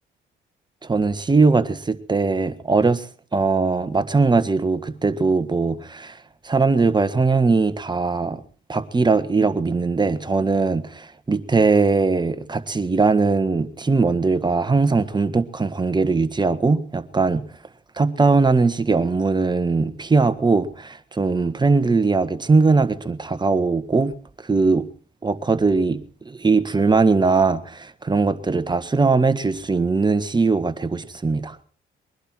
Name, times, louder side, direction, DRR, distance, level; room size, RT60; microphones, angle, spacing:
voice 1, 0.8-6.2 6.4-8.4 8.7-17.4 18.0-24.1 24.4-24.9 25.2-26.0 26.2-31.6, right 4 dB, 20° right, 1.6 m, -20 dB
22.5 x 11.5 x 4.6 m
cardioid pair, 90°, 20 cm